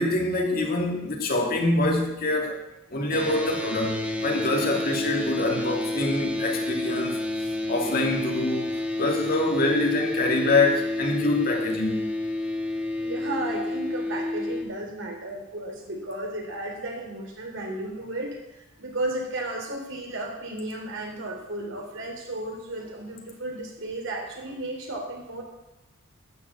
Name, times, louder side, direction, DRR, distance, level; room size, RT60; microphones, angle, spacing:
voice 1, 0.0-2.6 2.9-7.2 7.7-8.7 9.0-12.1, left 2 dB, 45° left, 1 dB, 2.5 m, -25 dB
sound 1, 3.1-14.6, left 2 dB, 5° right, 1.5 m, -29 dB
voice 2, 13.0-25.4, right 1 dB, 65° right, 1 dB, 3.4 m, -34 dB
12.5 x 7.4 x 8.4 m, 0.92 s
head